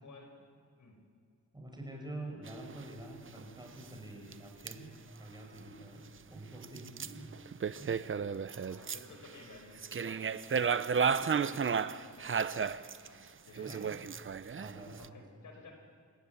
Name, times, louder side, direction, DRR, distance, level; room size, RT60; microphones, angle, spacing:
voice 1, 1.5-4.9 5.2-7.3 7.8-8.0 13.6-13.9 14.6-15.1, right 1 dB, 15° right, 1 dB, 5.5 m, -46 dB
sound 1, 2.5-2.9 3.3-3.4 3.7-3.8 4.3-4.4 4.7-4.8 6.6-9.3 9.8-13.1 13.6-15.1, right 6 dB, 45° right, 0.6 m, -33 dB
voice 2, 8.5-10.7 11.2-12.8 13.1-14.0 15.0-15.7, left 2 dB, 90° left, 3 dB, 5.1 m, -54 dB
27.0 x 15.0 x 9.6 m, 2.3 s
wide cardioid pair, 135°, 30 cm